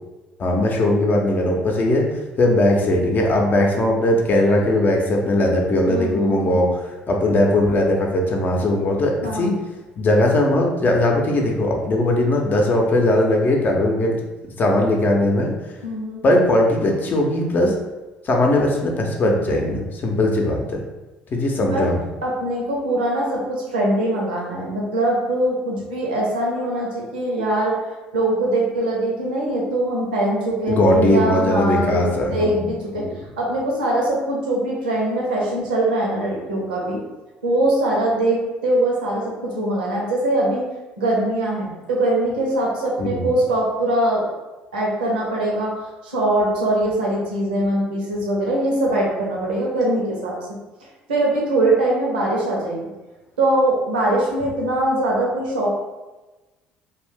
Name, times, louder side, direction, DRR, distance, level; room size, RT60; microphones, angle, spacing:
voice 1, 0.4-2.1 2.4-9.5 10.0-14.2 14.6-15.5 16.2-17.7 18.2-20.8 21.3-22.0 30.7-32.6 33.0-33.1 43.0-43.3, left 1 dB, 40° left, 0 dB, 0.7 m, -19 dB
voice 2, 5.9-6.5 9.2-9.5 15.8-16.2 21.6-21.9 22.2-27.8 28.1-33.0 33.4-37.0 37.4-40.7 41.0-44.2 44.7-50.4 51.1-52.8 53.4-55.7, right 1 dB, 75° right, -3 dB, 0.8 m, -22 dB
2.6 x 2.4 x 3.5 m, 1.2 s
figure-of-eight pair, 55°, 5 cm